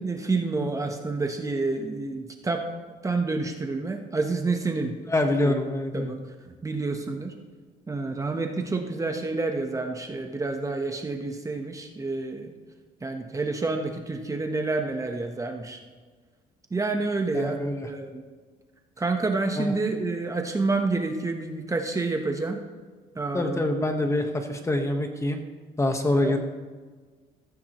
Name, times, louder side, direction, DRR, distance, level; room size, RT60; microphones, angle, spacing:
voice 1, 0.0-2.6 3.0-4.9 5.4-5.5 5.9-6.2 6.4-7.3 7.9-12.5 13.0-15.8 16.7-17.6 17.8-18.2 19.0-22.6 23.1-23.7 26.2-26.4, right 3 dB, 20° right, 4 dB, 1.1 m, -28 dB
voice 2, 5.0-6.1 17.3-17.9 19.6-19.7 23.3-25.4 25.8-26.4, left 1 dB, 15° left, 5 dB, 1.4 m, -25 dB
14.5 x 14.0 x 3.1 m, 1.4 s
cardioid pair, 110°, 17 cm